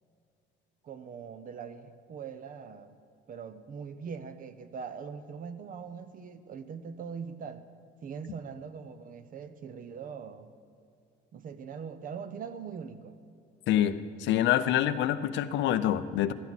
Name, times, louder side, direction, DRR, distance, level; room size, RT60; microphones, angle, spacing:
voice 1, 0.8-3.0 3.3-7.6 8.0-10.5 11.3-13.1, right 6 dB, 45° right, 11 dB, 0.8 m, -42 dB
voice 2, 13.7-16.3, left 11 dB, 70° left, 12 dB, 0.6 m, -26 dB
15.0 x 13.0 x 4.2 m, 2.5 s
cardioid pair, 115°, 20 cm